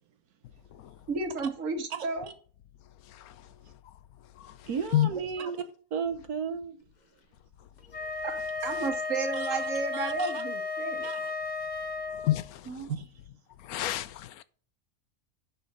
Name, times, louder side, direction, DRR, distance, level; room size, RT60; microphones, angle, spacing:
voice 1, 1.1-2.3 5.4-5.5 8.2-8.4 8.6-11.1, right 3 dB, 60° right, 1.8 m, -32 dB
voice 2, 3.1-3.5 4.4-5.1 12.1-12.7 13.6-14.4, left 14 dB, 80° left, 1.1 m, -30 dB
voice 3, 4.7-5.6 5.9-6.8 9.3-10.4 11.0-11.3 12.7-13.1, right 6 dB, 85° right, 1.5 m, -35 dB
Wind instrument woodwind instrument, 7.8-12.5, left 3 dB, 35° left, 0.8 m, -34 dB
11.0 x 4.4 x 5.4 m
omnidirectional pair, 1.6 m